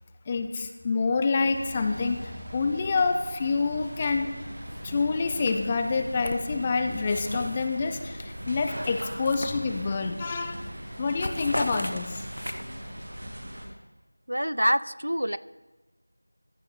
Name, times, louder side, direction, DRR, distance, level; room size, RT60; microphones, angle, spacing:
voice 1, 0.3-4.3 4.8-10.6 11.0-12.2, left 4 dB, 15° left, 7 dB, 0.3 m, -27 dB
sound 1, 1.5-13.7, equal, 45° right, 1.6 m, -39 dB
sound 2, 4.7-5.0 5.3-7.8 8.2-10.1 10.4-10.7 10.9-12.9, equal, 80° left, 0.8 m, -37 dB
voice 2, 14.3-15.4, equal, 85° right, 17 dB, 0.4 m, -25 dB
14.0 x 6.6 x 3.9 m, 1.2 s
figure-of-eight pair, 175°, 0 cm